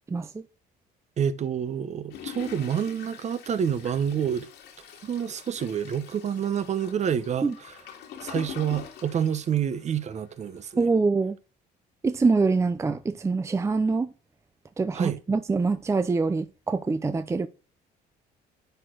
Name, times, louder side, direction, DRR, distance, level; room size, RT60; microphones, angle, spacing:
voice 1, 0.1-0.4 7.4-7.5 10.8-11.4 12.0-14.1 14.8-17.5, right 4 dB, 15° right, 0.5 m, -24 dB
voice 2, 1.2-4.5 5.0-7.7 8.2-10.8 14.9-15.2, right 8 dB, 40° right, 0.9 m, -28 dB
Toilet flush, 2.1-10.1 10.6-10.7 10.9-11.0, left 9 dB, 85° left, 2.3 m, -43 dB
10.5 x 4.7 x 3.9 m
cardioid pair, 110°, 17 cm